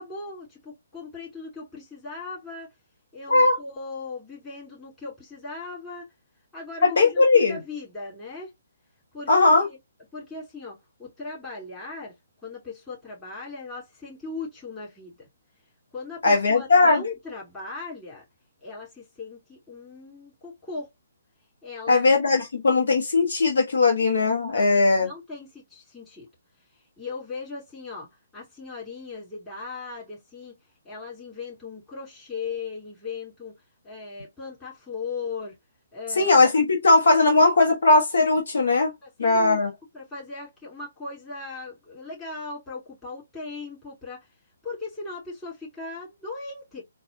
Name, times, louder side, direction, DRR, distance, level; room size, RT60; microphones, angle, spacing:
voice 1, 0.0-2.7 3.1-6.1 6.5-8.5 9.1-9.8 10.1-12.1 12.4-15.1 15.9-18.2 18.6-20.9 21.6-22.1 24.5-26.3 26.7-28.1 28.3-30.5 30.8-33.5 33.8-35.5 35.9-36.3 39.0-39.6 39.9-44.3 44.6-46.8, left 4 dB, 10° left, 2.7 m, -38 dB
voice 2, 3.3-3.6 6.8-7.6 9.3-9.7 16.2-17.0 21.9-25.1 36.2-38.9 39.2-39.7, left 3 dB, 60° left, 1.0 m, -19 dB
4.1 x 2.3 x 2.6 m
figure-of-eight pair, 135°, 0 cm